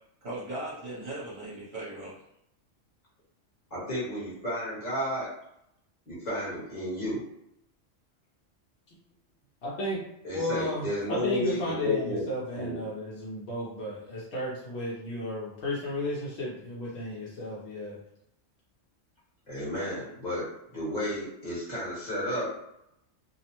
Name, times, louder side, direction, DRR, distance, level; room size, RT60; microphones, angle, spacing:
voice 1, 0.2-2.2, right 2 dB, 55° right, -9 dB, 1.0 m, -38 dB
voice 2, 3.7-5.3 6.1-7.2 10.2-12.3 12.5-12.8 19.5-22.5, left 1 dB, 35° left, -8 dB, 1.1 m, -32 dB
voice 3, 9.6-10.0 10.3-18.0, left 1 dB, 65° left, -6 dB, 0.9 m, -33 dB
2.6 x 2.0 x 2.9 m, 0.80 s
omnidirectional pair, 1.3 m